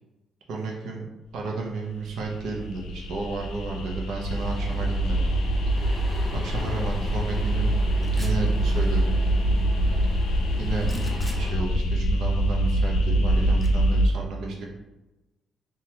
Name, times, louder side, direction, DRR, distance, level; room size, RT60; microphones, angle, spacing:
voice 1, 0.5-1.0 1.3-5.2 5.7-6.0 6.3-7.7 8.1-9.2 10.6-10.9 11.3-14.7, right 3 dB, 75° right, -1 dB, 0.5 m, -32 dB
sound 1, 2.1-14.1, right 1 dB, 80° left, 0.4 m, -24 dB
sound 2, 4.3-11.5, left 1 dB, 10° right, 1.0 m, -36 dB
sound 3, 8.0-8.5 10.8-11.4 13.6-13.7, left 1 dB, 5° left, 0.5 m, -43 dB
2.8 x 2.3 x 3.1 m, 1.0 s
cardioid pair, 90°, 0 cm